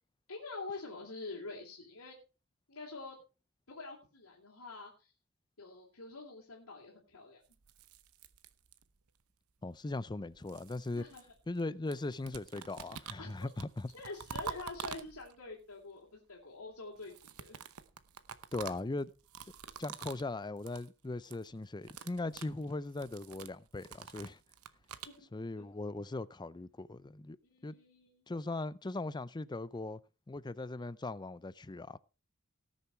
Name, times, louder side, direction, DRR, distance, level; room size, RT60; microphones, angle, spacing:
voice 1, 0.3-2.2 2.7-3.2 3.7-5.1 5.6-7.4 10.9-11.2 13.2-13.5 13.9-17.6 25.0-25.3 25.5-25.6 27.5-28.2, left 3 dB, 85° left, 2.9 m, -46 dB
sound 1, 7.5-9.1 10.0-11.6 11.9-15.5 17.0-20.3 20.6-20.9 21.2-21.5 21.8-25.2, right 7 dB, 85° right, 0.9 m, -47 dB
voice 2, 9.6-11.0 11.5-13.9 18.5-19.1 19.8-24.4 25.3-27.4 27.6-27.7 28.3-30.0 30.3-32.0, left 2 dB, 20° left, 0.5 m, -39 dB
18.0 x 6.9 x 4.4 m
head